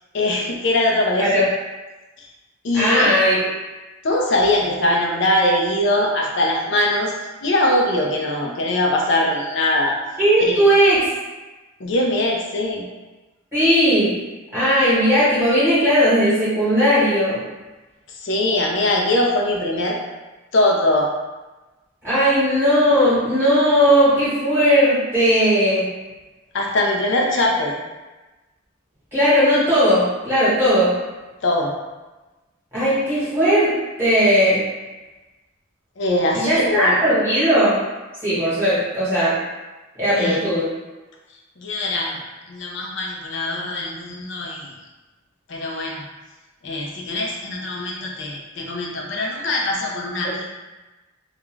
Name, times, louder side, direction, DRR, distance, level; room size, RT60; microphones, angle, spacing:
voice 1, 0.1-1.4 2.2-2.3 2.6-3.1 4.0-7.1 7.4-9.9 10.5-10.6 11.8-12.9 18.2-20.0 20.5-21.1 26.5-27.7 31.4-31.7 36.0-37.0 40.1-40.4 41.6-42.2 42.5-44.7 45.5-46.0 46.6-50.5, left 1 dB, 55° left, -1 dB, 0.5 m, -21 dB
voice 2, 2.7-3.5 10.2-11.1 13.5-14.1 14.5-17.4 22.0-25.9 29.1-31.0 32.7-33.7 34.0-34.6 36.3-37.8 38.2-39.4 40.0-40.7 50.2-50.3, equal, 10° right, -12 dB, 1.1 m, -17 dB
2.4 x 2.2 x 3.1 m, 1.2 s
head